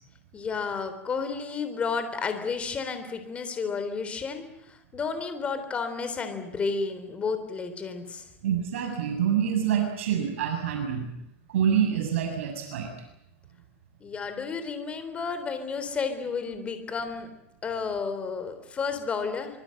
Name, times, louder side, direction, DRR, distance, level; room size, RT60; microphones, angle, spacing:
voice 1, 0.3-8.3 14.0-17.3 17.6-19.5, left 5 dB, 15° left, 9 dB, 3.5 m, -32 dB
voice 2, 8.4-11.1 11.5-12.9, right 8 dB, 70° right, 3 dB, 6.8 m, -26 dB
25.5 x 23.0 x 7.8 m, 0.84 s
supercardioid pair, 155°, 7 cm